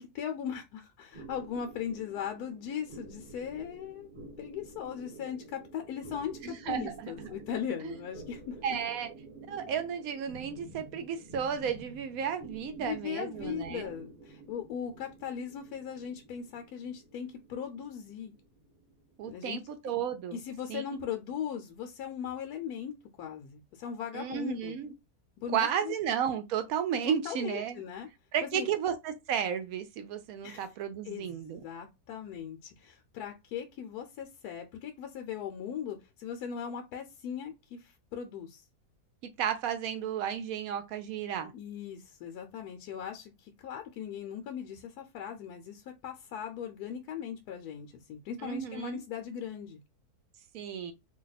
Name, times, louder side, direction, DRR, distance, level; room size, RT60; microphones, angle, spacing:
voice 1, 0.0-4.1 4.4-8.6 12.8-18.3 19.2-19.6 20.3-24.8 25.4-25.9 27.1-28.1 28.4-28.7 30.4-30.6 31.0-38.6 41.5-49.8, left 8 dB, 80° left, 1.1 m, -39 dB
sound 1, 1.1-19.9, right 2 dB, 35° right, 1.3 m, -50 dB
voice 2, 6.4-7.3 7.8-8.0 8.6-9.1 9.5-13.9 19.2-20.4 20.7-20.8 24.1-24.9 25.5-27.8 28.3-31.6 39.4-41.5 48.4-49.0 50.5-50.9, right 8 dB, 70° right, 1.0 m, -33 dB
2.8 x 2.2 x 3.9 m
omnidirectional pair, 1.7 m